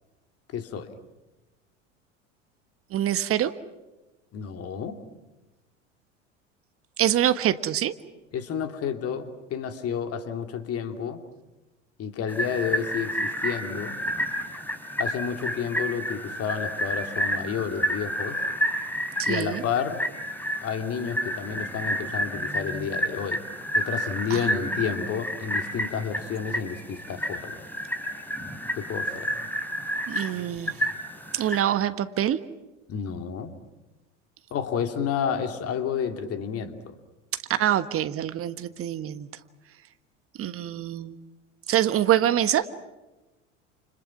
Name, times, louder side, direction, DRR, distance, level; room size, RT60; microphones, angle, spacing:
voice 1, 0.5-0.9 4.3-5.0 8.3-11.2 12.0-14.0 15.0-18.4 19.3-20.0 20.6-23.4 23.7-27.6 28.7-29.3 32.9-33.5 34.5-36.9, left 7 dB, 40° left, 7 dB, 3.0 m, -30 dB
voice 2, 2.9-3.5 7.0-7.9 19.2-19.6 24.3-24.5 30.1-30.8 31.3-32.4 37.6-39.3 40.4-41.2 41.7-42.7, right 11 dB, 35° right, 12 dB, 1.4 m, -25 dB
sound 1, 12.3-31.6, equal, 5° left, 4.3 m, -30 dB
30.0 x 29.0 x 6.0 m, 1.1 s
figure-of-eight pair, 75°, 38 cm